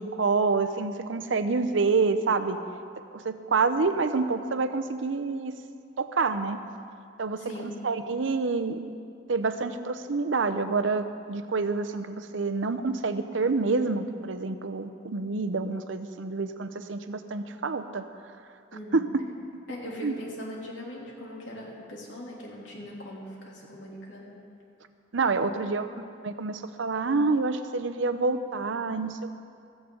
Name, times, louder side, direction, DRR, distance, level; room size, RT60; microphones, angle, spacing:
voice 1, 0.0-2.6 3.1-5.5 6.0-6.6 7.2-8.9 9.3-18.1 18.9-19.1 20.0-20.2 25.1-25.9 26.2-29.4, right 4 dB, 85° right, 9 dB, 0.7 m, -27 dB
voice 2, 7.4-7.8 18.7-19.0 19.7-24.4 25.4-25.9, left 1 dB, 80° left, -3 dB, 3.0 m, -40 dB
15.0 x 14.5 x 3.9 m, 2.3 s
head